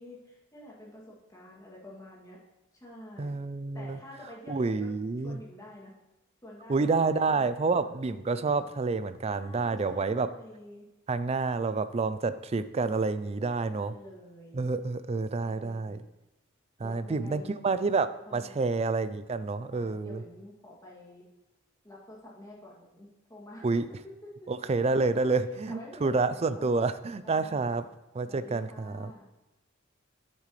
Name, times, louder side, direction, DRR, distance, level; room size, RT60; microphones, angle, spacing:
voice 1, 0.0-2.4 2.7-3.4 3.7-4.9 5.2-5.9 6.4-8.7 9.4-10.9 13.6-14.6 15.4-16.0 16.8-17.6 18.3-18.7 19.7-21.2 21.8-24.3 24.6-26.7 27.2-27.9 28.3-29.3, left 1 dB, 15° left, -6 dB, 2.5 m, -49 dB
voice 2, 3.2-4.0 4.5-5.4 6.7-10.3 11.1-13.9 14.5-16.0 16.8-20.2 23.6-23.9 24.5-27.8 28.1-29.1, right 3 dB, 30° right, 13 dB, 0.4 m, -28 dB
10.5 x 7.6 x 3.2 m, 1.0 s
head